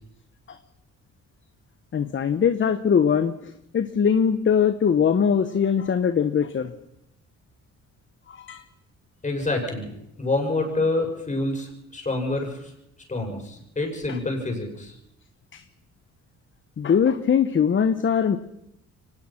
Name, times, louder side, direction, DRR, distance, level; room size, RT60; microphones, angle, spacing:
voice 1, 1.9-6.7 8.3-8.6 14.1-14.2 15.5-15.6 16.8-18.4, left 7 dB, 40° left, 11 dB, 1.0 m, -21 dB
voice 2, 9.2-9.9 10.2-12.7 13.1-14.9, left 2 dB, 25° left, 2 dB, 6.5 m, -27 dB
24.0 x 19.0 x 5.9 m, 0.82 s
cardioid pair, 90°, 30 cm